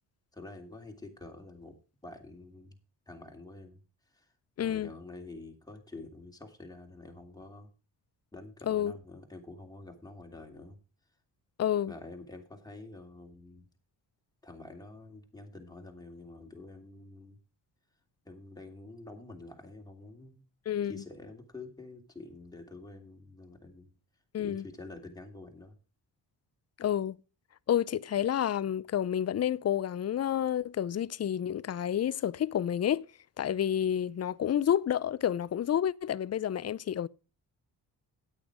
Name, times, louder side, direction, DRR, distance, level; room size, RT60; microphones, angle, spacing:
voice 1, 0.3-1.8 2.0-2.8 3.1-4.3 4.6-7.7 8.3-10.8 11.9-13.7 14.4-17.4 18.2-20.4 20.8-23.9 24.4-25.8, left 2 dB, 10° left, 3.0 m, -48 dB
voice 2, 4.6-4.9 8.7-8.9 11.6-11.9 20.7-20.9 24.3-24.6 26.8-27.2 27.7-33.0 33.4-37.1, left 10 dB, 35° left, 0.5 m, -29 dB
9.4 x 8.7 x 4.9 m
cardioid pair, 65°, 47 cm